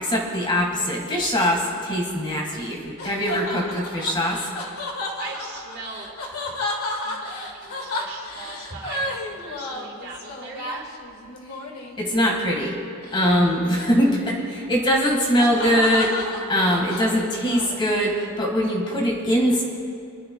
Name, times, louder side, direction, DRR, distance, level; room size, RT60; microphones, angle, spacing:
voice 1, 0.0-4.5 12.0-12.8 13.1-19.6, equal, 20° left, -1 dB, 1.6 m, -22 dB
sound 1, 2.3-12.1 13.0-13.4 13.7-18.3, left 2 dB, 85° left, 1.7 m, -33 dB
voice 2, 5.2-6.3 7.0-10.8, right 3 dB, 55° right, -4 dB, 3.7 m, -39 dB
29.0 x 11.5 x 2.2 m, 2.5 s
head